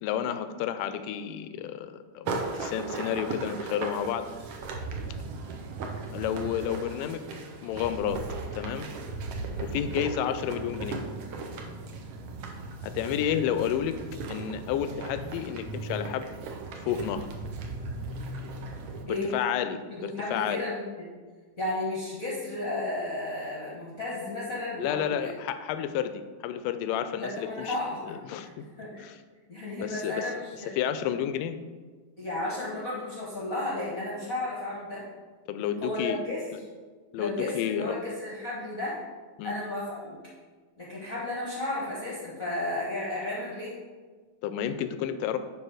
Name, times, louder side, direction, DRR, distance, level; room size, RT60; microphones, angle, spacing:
voice 1, 0.0-4.3 6.1-7.3 7.6-8.2 8.5-8.9 9.6-11.0 12.8-14.0 14.3-16.3 16.9-17.3 19.1-20.6 24.8-27.7 28.0-28.7 29.0-29.2 29.8-30.2 30.8-31.6 35.5-36.2 37.1-38.0 39.4-39.5 44.4-45.4, left 9 dB, 85° left, 10 dB, 2.2 m, -31 dB
sound 1, 2.3-19.0, right 3 dB, 80° right, 1.3 m, -37 dB
voice 2, 19.9-21.1 21.6-25.3 27.1-28.5 28.8-29.1 29.5-30.7 32.2-35.0 35.8-36.5 37.2-39.0 39.4-40.2 40.8-43.7, left 2 dB, 45° left, -7 dB, 1.0 m, -33 dB
11.0 x 3.8 x 4.8 m, 1.4 s
omnidirectional pair, 3.8 m